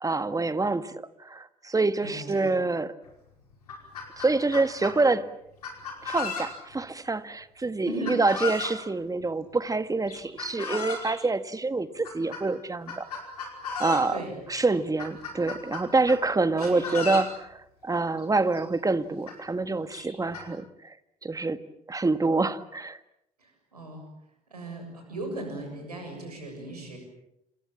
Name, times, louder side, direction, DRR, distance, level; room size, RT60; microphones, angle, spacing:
voice 1, 0.0-2.9 4.2-5.3 6.0-13.1 13.8-14.2 14.5-20.9 21.2-21.6 21.9-23.0, right 3 dB, 20° right, 12 dB, 1.8 m, -26 dB
voice 2, 2.0-2.5 7.8-8.2 14.1-14.3 16.6-16.9 23.4-24.0 24.5-27.0, right 1 dB, 90° right, 4 dB, 7.1 m, -37 dB
Chicken rooster, 3.0-3.1 3.5-5.0 5.6-6.8 8.1-8.8 10.1-11.2 12.0-12.4 12.9-14.1 14.5-14.6 15.0-16.2 16.6-17.3 18.2-18.3 18.5-18.6 19.3-19.4 19.9-20.4, left 4 dB, 85° left, 5.2 m, -35 dB
28.0 x 27.5 x 7.3 m, 0.81 s
figure-of-eight pair, 55°, 19 cm